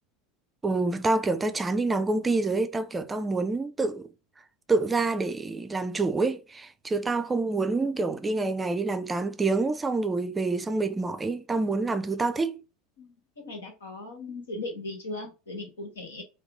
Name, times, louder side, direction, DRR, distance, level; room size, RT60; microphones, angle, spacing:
voice 1, 0.6-4.1 4.7-12.6, right 3 dB, 15° right, 0.4 m, -27 dB
voice 2, 13.0-16.2, left 2 dB, 85° left, 1.3 m, -38 dB
2.8 x 2.3 x 3.6 m
hypercardioid pair, 85°, 0 cm